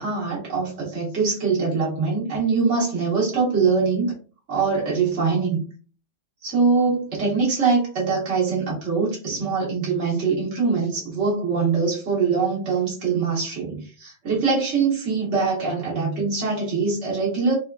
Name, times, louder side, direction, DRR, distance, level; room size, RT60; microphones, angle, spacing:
voice 1, 0.0-4.1 4.5-5.6 6.4-17.6, right 4 dB, 70° right, -6 dB, 1.6 m, -23 dB
4.2 x 2.3 x 2.3 m, 0.37 s
omnidirectional pair, 1.3 m